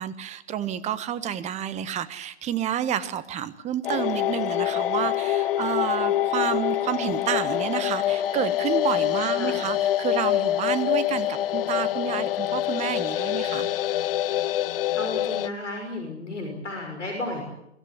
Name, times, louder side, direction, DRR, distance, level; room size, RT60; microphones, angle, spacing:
voice 1, 0.0-13.7, right 10 dB, 20° right, 15 dB, 1.3 m, -29 dB
sound 1, 3.8-15.5, left 13 dB, 50° left, 0.8 m, -25 dB
voice 2, 9.2-9.6 14.9-17.4, left 1 dB, 85° left, 3 dB, 6.0 m, -33 dB
24.0 x 14.5 x 9.8 m, 0.80 s
hypercardioid pair, 120°, 35 cm